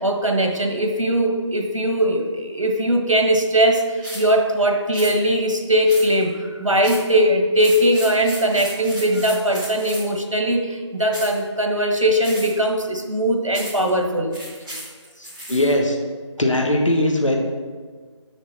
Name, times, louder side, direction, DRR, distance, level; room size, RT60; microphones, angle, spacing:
voice 1, 0.0-14.4, right 1 dB, 85° right, 3 dB, 1.3 m, -20 dB
sound 1, 4.0-4.3 4.9-5.1 5.9-6.3 6.8-7.1 7.6-10.2 11.1-11.4 12.2-12.7 13.5-13.9 14.3-15.7, right 1 dB, 15° right, 2.1 m, -35 dB
voice 2, 15.2-16.0 16.4-17.4, left 1 dB, 80° left, 2 dB, 1.4 m, -20 dB
6.9 x 6.1 x 4.1 m, 1.5 s
figure-of-eight pair, 165°, 16 cm